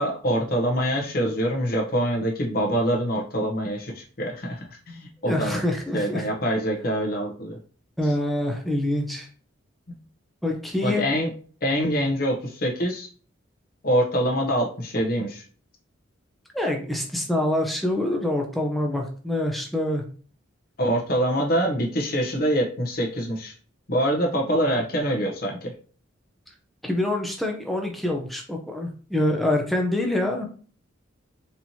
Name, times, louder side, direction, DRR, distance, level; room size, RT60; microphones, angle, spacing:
voice 1, 0.0-5.6 5.9-7.6 8.0-8.1 9.9-10.0 10.8-11.3 11.6-13.1 13.8-15.4 20.8-23.5 23.9-25.7, equal, 45° left, -1 dB, 0.8 m, -25 dB
voice 2, 5.2-6.3 8.0-9.3 10.4-11.1 16.5-20.0 26.8-30.5, left 1 dB, ahead, 1 dB, 0.6 m, -25 dB
4.3 x 2.9 x 2.7 m, 0.42 s
head